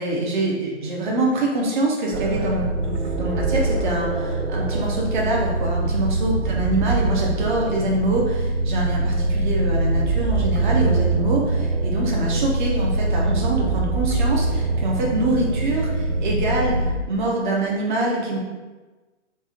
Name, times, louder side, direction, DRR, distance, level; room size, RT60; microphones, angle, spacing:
voice 1, 0.0-18.4, right 2 dB, 40° right, -2 dB, 1.0 m, -25 dB
sound 1, 2.1-16.9, right 2 dB, 60° right, 0.7 m, -23 dB
3.5 x 2.4 x 4.2 m, 1.2 s
figure-of-eight pair, 130°, 37 cm